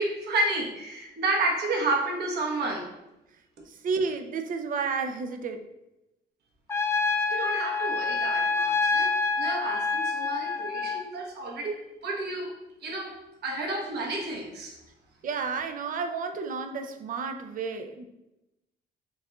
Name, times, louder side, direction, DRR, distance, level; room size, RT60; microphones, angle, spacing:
voice 1, 0.0-2.9 7.3-12.5 12.8-14.8, right 2 dB, 70° right, 0 dB, 1.0 m, -31 dB
voice 2, 3.7-5.6 15.2-18.1, right 5 dB, 50° right, 6 dB, 0.4 m, -31 dB
Trumpet, 6.7-11.0, left 4 dB, 15° left, 0.3 m, -27 dB
7.0 x 2.5 x 2.2 m, 0.93 s
cardioid pair, 125°, 18 cm